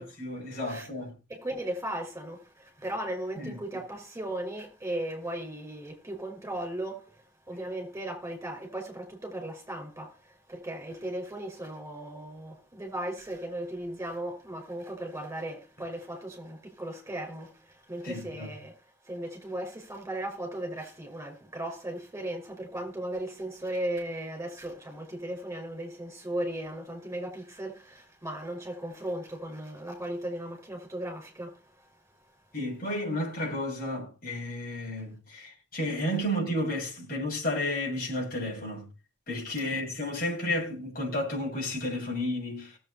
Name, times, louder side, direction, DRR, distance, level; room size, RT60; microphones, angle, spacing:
voice 1, 0.0-1.1 3.4-3.6 18.0-18.5 32.5-38.9 39.3-42.8, left 1 dB, 45° left, 7.7 m, -32 dB
voice 2, 1.3-18.7 19.0-31.9, right 1 dB, 15° right, 5.5 m, -37 dB
19.0 x 8.1 x 4.3 m
head